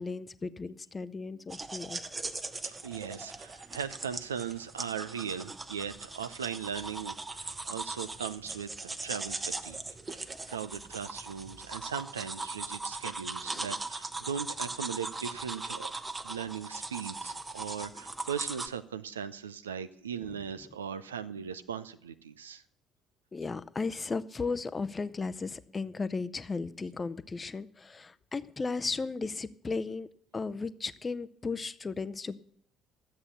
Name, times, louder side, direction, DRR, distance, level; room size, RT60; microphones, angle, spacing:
voice 1, 0.0-2.0 20.2-20.3 23.3-30.1 30.3-32.4, left 4 dB, 25° left, 16 dB, 0.6 m, -35 dB
sound 1, 1.5-18.7, right 3 dB, 25° right, 0.9 m, -39 dB
voice 2, 2.6-9.8 10.1-15.9 16.2-22.6, right 7 dB, 80° right, 12 dB, 0.5 m, -39 dB
12.5 x 8.1 x 6.8 m, 0.63 s
figure-of-eight pair, 50°, 0 cm